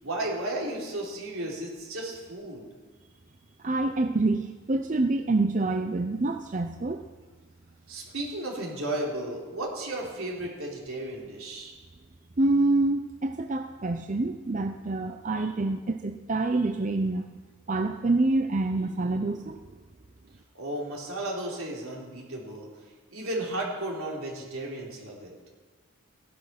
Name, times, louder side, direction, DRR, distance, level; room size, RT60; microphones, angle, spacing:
voice 1, 0.0-2.7 7.9-11.7 20.5-22.7 23.1-25.3, right 1 dB, 75° right, -2 dB, 3.5 m, -34 dB
voice 2, 3.6-7.0 12.4-17.3 17.7-19.7, right 2 dB, 35° right, 6 dB, 0.5 m, -26 dB
16.0 x 11.0 x 5.9 m, 1.4 s
head